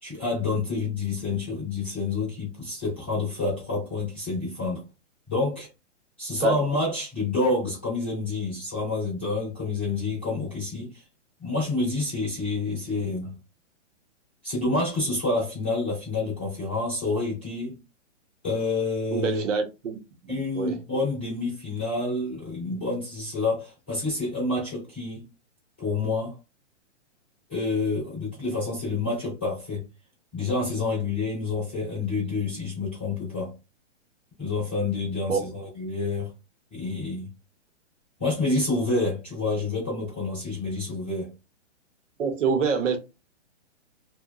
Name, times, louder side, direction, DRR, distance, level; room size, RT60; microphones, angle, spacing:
voice 1, 0.0-4.8 5.3-5.7 6.2-11.0 11.4-13.3 14.4-17.7 18.4-19.4 20.3-25.2 25.8-26.4 27.5-29.8 30.3-33.5 34.4-36.3 36.7-37.3 38.2-41.3, left 3 dB, 10° left, 0.5 m, -28 dB
voice 2, 19.1-20.0 20.2-20.8 35.2-35.5 42.2-43.0, right 5 dB, 85° right, 0.9 m, -26 dB
2.8 x 2.2 x 2.2 m
hypercardioid pair, 180°, 36 cm